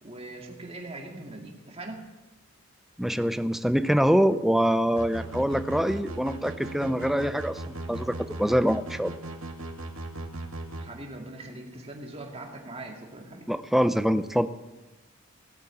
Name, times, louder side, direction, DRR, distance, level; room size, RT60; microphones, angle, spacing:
voice 1, 0.0-2.1 10.8-13.5, right 2 dB, 25° right, 1 dB, 2.4 m, -41 dB
voice 2, 3.0-9.1 13.5-14.5, equal, ahead, 12 dB, 0.5 m, -24 dB
sound 1, 5.0-10.9, right 2 dB, 70° right, 2.2 m, -37 dB
17.5 x 8.9 x 8.6 m, 1.1 s
head